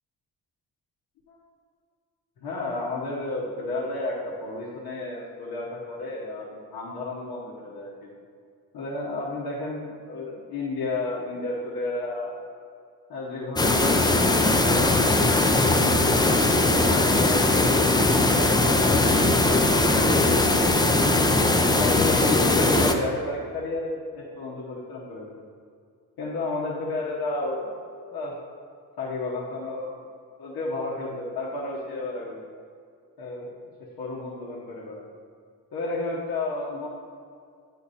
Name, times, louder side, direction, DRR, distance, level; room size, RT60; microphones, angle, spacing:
voice 1, 2.4-8.1 8.7-12.3 13.1-14.8 15.2-16.2 16.9-18.0 18.4-19.1 19.7-20.9 21.8-25.3 26.2-27.7 28.1-28.3 29.0-30.0 30.4-32.4 33.2-33.5 34.0-35.0 35.7-36.9, left 2 dB, 75° left, -6 dB, 1.2 m, -32 dB
sound 1, 13.6-22.9, left 2 dB, 10° left, 0.5 m, -20 dB
8.6 x 4.3 x 4.1 m, 2.2 s
cardioid pair, 75°, 36 cm